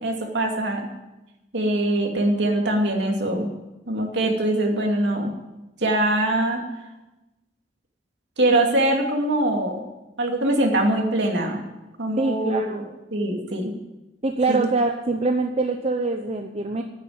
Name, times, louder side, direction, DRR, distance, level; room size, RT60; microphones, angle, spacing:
voice 1, 0.0-0.9 1.5-3.5 3.9-5.3 5.8-6.6 8.4-9.8 10.2-11.6 12.0-12.8 13.1-13.7 14.5-14.6, right 1 dB, 65° right, 1 dB, 2.6 m, -23 dB
voice 2, 12.2-12.8 14.2-16.8, right 3 dB, 35° right, 3 dB, 0.8 m, -24 dB
10.0 x 9.2 x 9.4 m, 1.0 s
head